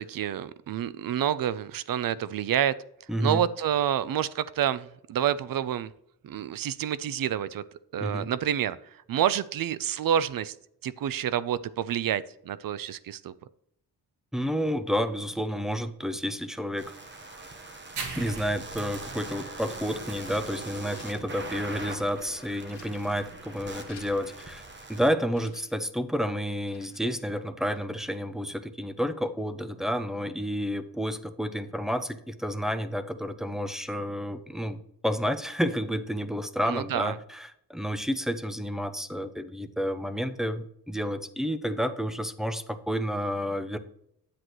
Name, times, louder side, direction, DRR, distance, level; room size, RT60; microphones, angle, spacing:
voice 1, 0.0-2.7 3.2-5.9 6.2-7.6 7.9-10.5 10.8-13.3 36.7-37.2, right 10 dB, 60° right, 16 dB, 0.5 m, -28 dB
voice 2, 3.1-3.4 8.0-8.3 14.3-16.9 18.2-24.6 24.9-43.8, equal, ahead, 9 dB, 0.4 m, -30 dB
sound 1, 16.8-25.1, right 3 dB, 30° right, 1.1 m, -42 dB
sound 2, 18.0-25.1, right 4 dB, 85° right, 1.7 m, -43 dB
sound 3, 19.7-24.5 25.3-27.3, left 6 dB, 75° left, 1.8 m, -55 dB
10.0 x 7.8 x 3.0 m, 0.74 s
wide cardioid pair, 155°, 40 cm